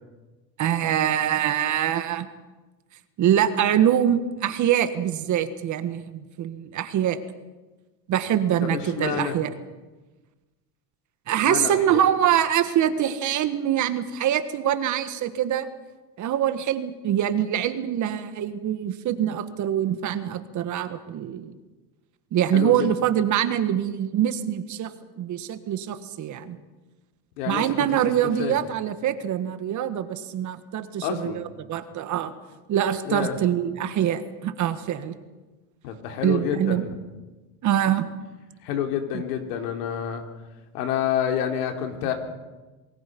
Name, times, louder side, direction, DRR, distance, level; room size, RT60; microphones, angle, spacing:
voice 1, 0.6-2.3 3.2-7.2 8.1-9.5 11.3-15.7 16.2-21.5 22.3-26.6 27.4-32.3 32.7-35.2 36.2-36.8 37.6-38.1 39.1-39.2, right 10 dB, 40° right, 11 dB, 1.7 m, -24 dB
voice 2, 8.6-9.4 11.5-12.0 22.5-22.9 27.4-27.9 28.4-28.5 31.0-31.4 33.1-33.4 35.8-37.0 38.6-40.2 40.7-42.1, left 8 dB, 80° left, 4 dB, 3.8 m, -28 dB
28.0 x 20.5 x 5.4 m, 1.2 s
supercardioid pair, 125°, 46 cm